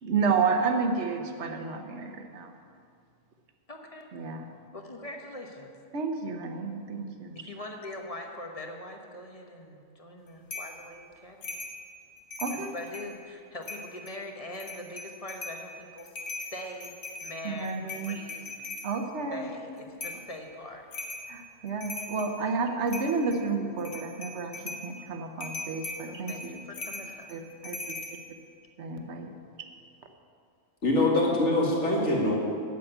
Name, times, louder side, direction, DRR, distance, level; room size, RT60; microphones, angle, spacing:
voice 1, 0.0-2.6 4.1-4.5 5.9-7.5 12.4-12.7 17.4-18.2 18.8-19.5 21.3-26.6 27.3-27.8 28.8-29.3 29.6-29.7, right 4 dB, 60° right, 5 dB, 1.3 m, -31 dB
voice 2, 3.7-4.1 4.7-5.7 7.3-11.5 12.5-16.1 16.5-16.9 17.2-18.6 19.3-20.8 26.1-27.3, left 1 dB, 30° left, 2 dB, 1.1 m, -42 dB
sound 1, 10.5-10.8 11.4-11.8 12.2-13.1 13.6-14.2 14.6-15.6 16.0-18.9 20.0-20.3 20.9-21.3 21.7-22.4 22.9-23.4 23.8-24.9 25.4-28.1, left 2 dB, 85° left, 1.8 m, -39 dB
voice 3, 30.8-32.4, left 1 dB, 60° left, -3 dB, 2.4 m, -24 dB
8.7 x 7.6 x 9.0 m, 2.3 s
omnidirectional pair, 1.4 m